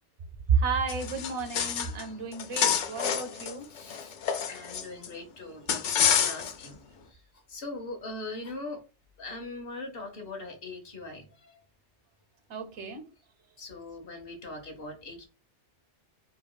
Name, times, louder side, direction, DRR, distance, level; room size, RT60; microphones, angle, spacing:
voice 1, 0.5-3.7 12.5-13.1, right 5 dB, 75° right, 8 dB, 1.1 m, -31 dB
sound 1, 0.9-2.0 2.3-5.1 5.7-6.7, left 8 dB, 80° left, 0.9 m, -28 dB
voice 2, 3.7-4.2 4.5-8.8 9.2-11.6 13.6-15.2, left 2 dB, 55° left, 4 dB, 1.2 m, -41 dB
5.4 x 2.9 x 2.2 m, 0.32 s
omnidirectional pair, 1.2 m